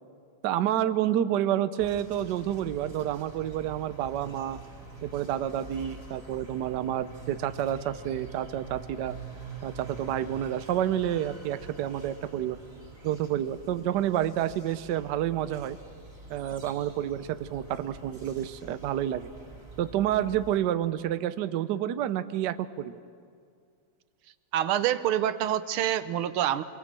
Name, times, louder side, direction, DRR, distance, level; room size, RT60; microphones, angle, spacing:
voice 1, 0.4-4.6 5.0-9.1 9.6-12.6 13.0-15.8 16.3-19.3 19.8-23.0, right 11 dB, 65° right, 12 dB, 1.2 m, -29 dB
sound 1, 1.8-20.6, right 3 dB, 10° right, 2.8 m, -46 dB
voice 2, 24.5-26.6, right 11 dB, 85° right, 13 dB, 1.7 m, -26 dB
26.0 x 21.0 x 7.5 m, 2.2 s
omnidirectional pair, 2.3 m